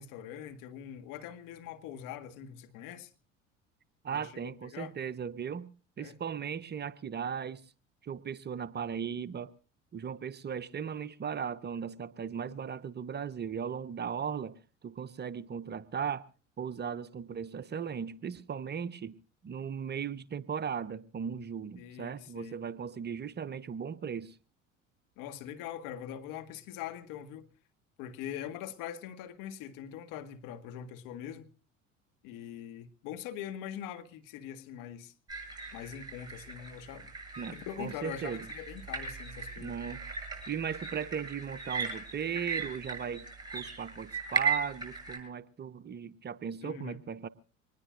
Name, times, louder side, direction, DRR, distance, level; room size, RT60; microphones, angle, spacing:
voice 1, 0.0-3.1 4.1-4.9 6.0-6.2 21.8-22.6 25.2-27.5 28.0-31.5 32.2-35.1 35.7-37.1 37.5-39.7 46.6-47.0, left 10 dB, 55° left, 1.7 m, -43 dB
voice 2, 4.0-5.7 6.0-7.6 8.0-9.5 9.9-16.3 16.6-19.1 19.4-24.4 37.4-38.5 39.6-40.0 40.5-47.3, right 7 dB, 25° right, 0.8 m, -37 dB
sound 1, 35.3-45.2, right 5 dB, 10° right, 7.5 m, -38 dB
24.0 x 20.5 x 2.6 m
figure-of-eight pair, 65°, 39 cm